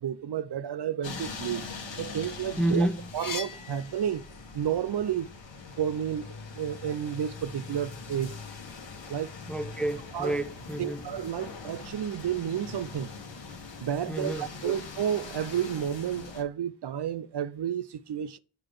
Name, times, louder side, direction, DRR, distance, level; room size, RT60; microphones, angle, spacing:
voice 1, 0.0-1.6 2.0-2.9 3.1-4.2 4.5-5.3 5.8-8.4 9.1-9.3 10.1-10.4 10.8-13.1 13.8-18.4, right 9 dB, 65° right, 0.5 m, -31 dB
sound 1, 1.0-16.4, left 4 dB, 80° left, 1.4 m, -42 dB
sound 2, 2.2-4.6 5.1-6.5, left 5 dB, 50° left, 0.9 m, -42 dB
voice 2, 2.6-3.0 9.5-11.0 14.1-14.7, right 1 dB, 5° left, 0.4 m, -29 dB
6.7 x 3.9 x 4.9 m
wide cardioid pair, 70°, 44 cm